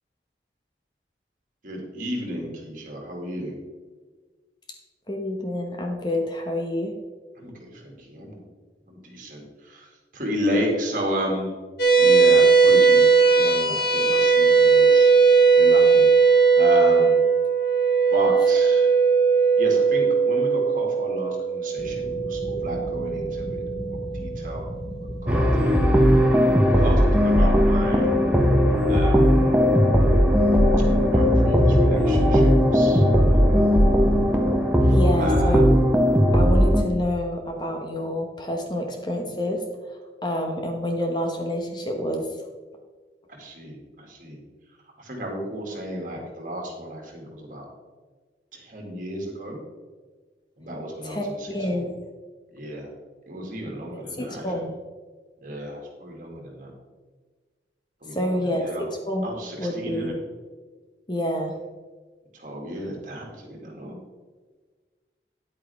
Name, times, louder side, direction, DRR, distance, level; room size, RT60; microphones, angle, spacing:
voice 1, 1.6-3.6 7.4-8.4 8.9-11.5 12.0-15.1 15.5-16.1 16.6-17.2 18.1-18.9 19.6-23.6 23.9-24.6 25.2-25.9 26.7-28.1 28.9-29.6 31.1-33.7 34.8-35.8 43.3-44.4 45.0-47.7 48.5-49.6 50.6-51.8 52.5-52.9 53.3-54.7 55.4-56.7 58.0-58.8 59.2-60.1 62.3-64.0, equal, 50° right, 0 dB, 2.3 m, -32 dB
voice 2, 5.1-6.9 34.9-35.6 36.3-39.6 40.2-42.3 51.0-51.9 53.9-54.7 58.1-58.6 58.9-59.3 59.6-60.2 61.1-61.6, left 1 dB, 25° left, 2 dB, 1.1 m, -28 dB
sound 1, 11.8-24.4, right 5 dB, 65° left, 1.7 m, -18 dB
sound 2, 21.8-34.8, left 1 dB, 10° left, 2.7 m, -35 dB
sound 3, 25.3-36.8, equal, 5° right, 1.0 m, -18 dB
9.9 x 8.9 x 3.5 m, 1.4 s
head